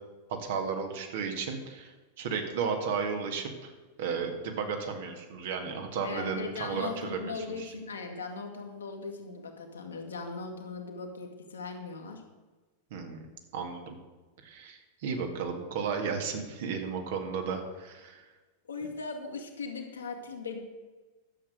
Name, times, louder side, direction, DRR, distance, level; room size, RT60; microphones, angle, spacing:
voice 1, 0.4-3.7 4.0-7.3 12.9-13.2 13.5-14.0 14.4-18.2, right 5 dB, 55° right, 4 dB, 1.9 m, -34 dB
voice 2, 6.0-12.2 18.7-20.6, left 4 dB, 70° left, 3 dB, 1.9 m, -39 dB
11.5 x 7.7 x 6.5 m, 1.2 s
figure-of-eight pair, 90°, 0 cm